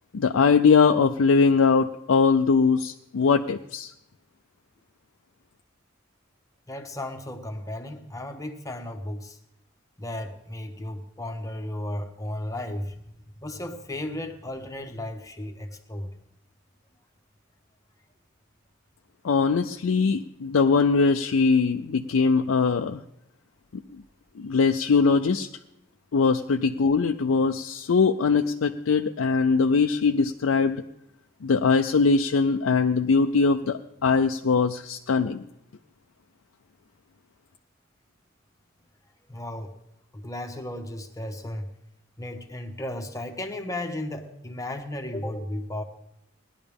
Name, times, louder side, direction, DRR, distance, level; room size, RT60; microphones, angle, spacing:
voice 1, 0.1-3.9 19.2-23.0 24.4-25.5 26.1-30.8 31.4-35.4, left 4 dB, 85° left, 5 dB, 0.5 m, -21 dB
voice 2, 6.7-9.4 10.0-12.9 13.4-16.1 39.3-39.7 40.1-41.7 42.2-45.8, left 1 dB, 15° left, 4 dB, 1.1 m, -34 dB
18.5 x 11.0 x 3.5 m, 0.79 s
head